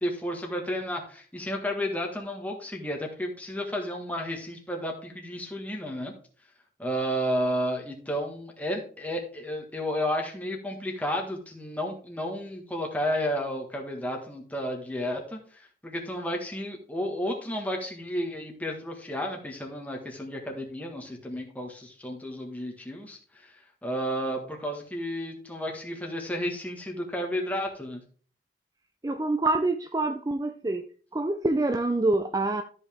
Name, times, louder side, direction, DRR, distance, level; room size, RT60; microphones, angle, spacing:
voice 1, 0.0-6.1 6.8-23.5 23.8-28.0, equal, 10° left, 1.6 m, -32 dB
voice 2, 29.0-30.9 31.1-32.6, right 2 dB, 20° right, 0.4 m, -26 dB
13.0 x 5.4 x 3.5 m
head